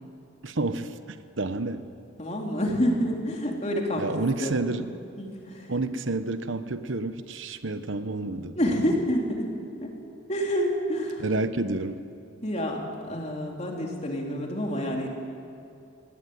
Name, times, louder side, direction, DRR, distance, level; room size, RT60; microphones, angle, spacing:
voice 1, 0.4-1.9 4.0-4.9 5.7-8.6 11.2-12.0, right 2 dB, 70° right, 11 dB, 1.0 m, -29 dB
voice 2, 2.2-4.1 4.4-4.8 5.2-5.7 8.6-9.5 9.8-9.9 10.3-11.2 12.4-15.1, equal, 35° left, 0 dB, 3.5 m, -28 dB
23.5 x 18.0 x 9.6 m, 2.6 s
head